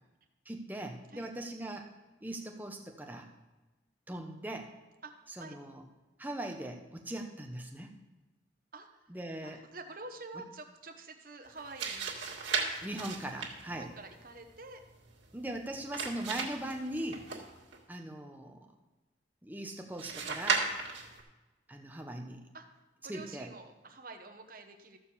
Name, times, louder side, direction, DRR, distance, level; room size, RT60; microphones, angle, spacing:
voice 1, 0.5-1.9 2.2-3.3 4.1-4.7 5.3-5.8 6.2-7.9 9.1-9.6 12.8-13.9 15.3-17.2 17.9-18.7 19.4-20.7 21.7-22.4 23.1-23.5, right 1 dB, 10° right, 3 dB, 0.9 m, -40 dB
voice 2, 5.0-5.6 8.7-9.1 9.4-12.2 13.6-14.8 17.3-17.4 22.5-22.7 23.0-25.0, right 3 dB, 50° right, 5 dB, 1.1 m, -48 dB
sound 1, 11.5-17.8 20.0-21.2, right 5 dB, 85° right, 2.0 m, -37 dB
14.0 x 4.8 x 7.0 m, 1.1 s
head